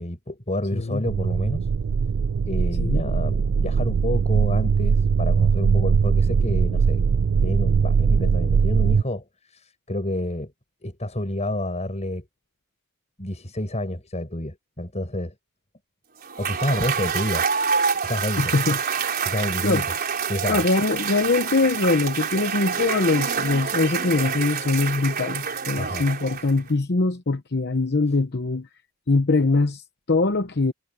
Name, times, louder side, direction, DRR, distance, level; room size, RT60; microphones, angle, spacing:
voice 1, 0.0-1.7 2.5-7.0 7.4-10.5 10.8-12.3 13.2-15.3 16.4-17.5 18.0-18.5 19.2-19.9 20.3-20.6 25.8-26.1, left 1 dB, 30° left, 7.4 m, -29 dB
voice 2, 0.7-1.0 2.8-3.0 18.4-18.8 19.6-19.8 20.5-28.7 29.1-30.7, left 3 dB, 50° left, 0.9 m, -22 dB
sound 1, 1.0-9.0, right 6 dB, 60° right, 0.4 m, -21 dB
Cheering / Applause / Crowd, 16.2-26.7, right 6 dB, 45° right, 4.0 m, -27 dB
head